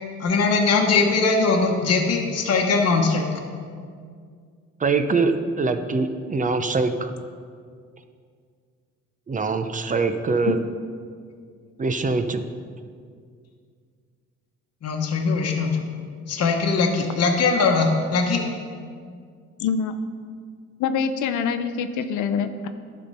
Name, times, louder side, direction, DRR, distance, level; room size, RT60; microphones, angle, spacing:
voice 1, 0.2-3.3 14.8-15.8 16.3-18.4, left 4 dB, 55° left, 1 dB, 1.1 m, -21 dB
voice 2, 4.8-7.1 9.3-10.6 11.8-12.4, right 4 dB, 25° right, 8 dB, 0.6 m, -23 dB
voice 3, 19.6-19.9 20.8-22.7, left 6 dB, 80° left, 9 dB, 0.6 m, -25 dB
12.0 x 4.4 x 5.5 m, 2.1 s
cardioid pair, 90°, 30 cm